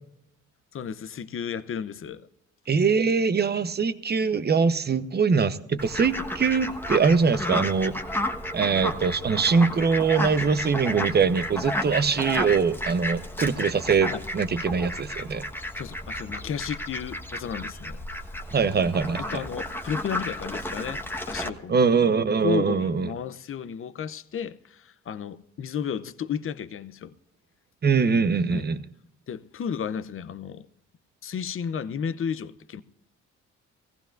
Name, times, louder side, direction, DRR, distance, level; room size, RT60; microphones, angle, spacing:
voice 1, 0.7-2.3 14.1-14.2 15.3-18.0 18.8-18.9 19.2-21.8 22.4-27.1 28.5-28.7 29.3-30.7 31.2-32.8, left 7 dB, 45° left, 0.7 m, -33 dB
voice 2, 2.7-8.0 8.5-15.5 18.5-19.2 21.7-23.1 27.8-28.8, right 5 dB, 35° right, 0.9 m, -23 dB
Fowl, 5.8-21.5, left 1 dB, 5° left, 1.3 m, -32 dB
18.0 x 15.0 x 2.6 m
cardioid pair, 90°, 30 cm